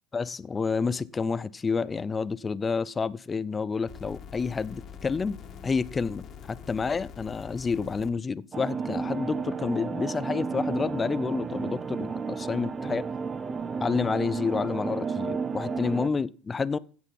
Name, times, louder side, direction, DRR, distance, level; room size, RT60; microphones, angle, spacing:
voice 1, 0.1-5.4 5.6-13.0 13.8-16.8, left 5 dB, 20° left, 0.6 m, -29 dB
sound 1, 3.9-8.1 9.1-9.2, left 7 dB, 45° left, 2.0 m, -44 dB
sound 2, 8.5-16.1, right 5 dB, 25° right, 0.7 m, -32 dB
16.0 x 6.3 x 5.4 m
supercardioid pair, 95°, 0 cm